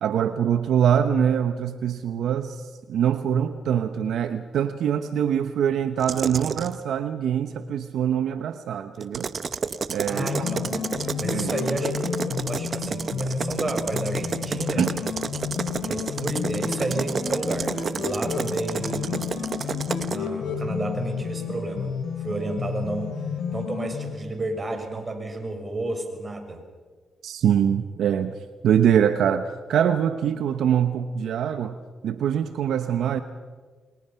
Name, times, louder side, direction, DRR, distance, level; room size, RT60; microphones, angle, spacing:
voice 1, 0.0-9.3 9.9-10.5 11.3-11.5 14.8-14.9 27.2-28.3 28.6-29.4 29.7-31.8 32.0-33.2, right 9 dB, 80° right, 9 dB, 1.0 m, -23 dB
sound 1, 6.0-6.7 9.0-20.2, right 5 dB, 55° right, 1.1 m, -31 dB
sound 2, 10.1-24.1, left 6 dB, 80° left, 4.2 m, -31 dB
voice 2, 10.1-10.9 11.2-14.9 15.8-19.2 20.1-23.2 23.5-26.6, right 2 dB, 35° right, 5 dB, 6.2 m, -31 dB
29.5 x 22.5 x 5.8 m, 1.5 s
supercardioid pair, 55°, 0 cm